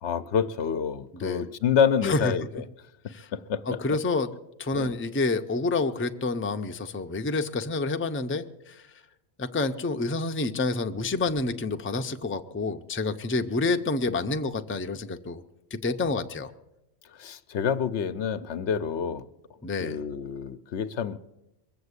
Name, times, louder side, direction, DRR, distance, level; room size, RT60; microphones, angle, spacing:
voice 1, 0.0-2.6 3.0-3.6 4.7-4.9 17.2-19.3 19.8-21.2, left 7 dB, 80° left, 11 dB, 1.0 m, -27 dB
voice 2, 1.1-1.4 2.0-2.3 3.1-3.3 3.7-4.3 4.6-8.8 9.4-15.4 15.7-16.5 19.6-20.0, left 3 dB, 15° left, 6 dB, 0.5 m, -28 dB
22.0 x 7.8 x 8.2 m, 0.91 s
omnidirectional pair, 1.1 m